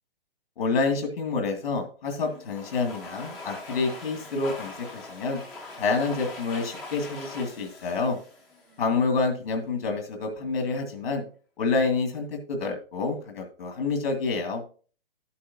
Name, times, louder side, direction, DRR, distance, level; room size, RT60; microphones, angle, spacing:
voice 1, 0.6-5.4 5.8-8.2 8.8-11.2 11.6-14.6, left 4 dB, 75° left, 4 dB, 2.2 m, -28 dB
Domestic sounds home sounds, 2.2-9.1, left 2 dB, 5° left, 0.4 m, -42 dB
11.5 x 8.5 x 2.7 m, 0.40 s
hypercardioid pair, 170°, 30 cm